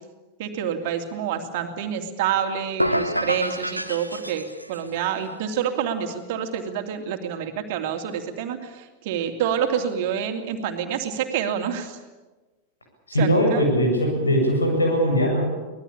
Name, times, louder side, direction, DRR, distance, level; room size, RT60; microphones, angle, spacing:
voice 1, 0.4-12.0 13.2-13.6, right 8 dB, 50° right, 5 dB, 2.8 m, -27 dB
sound 1, 2.8-4.9, equal, 90° right, 1.2 m, -27 dB
voice 2, 13.1-15.5, equal, 75° left, 2 dB, 7.9 m, -20 dB
24.5 x 19.5 x 8.7 m, 1.2 s
figure-of-eight pair, 90°, 0 cm